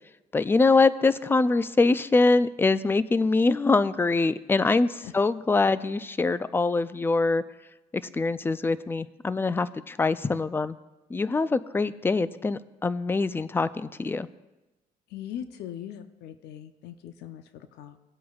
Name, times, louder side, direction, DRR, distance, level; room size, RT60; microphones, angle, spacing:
voice 1, 0.3-7.4 8.1-10.8 11.1-14.3, left 3 dB, 15° left, 15 dB, 0.3 m, -24 dB
voice 2, 15.1-18.0, left 10 dB, 80° left, 10 dB, 0.6 m, -40 dB
18.0 x 8.3 x 2.4 m, 1.1 s
cardioid pair, 110°, 17 cm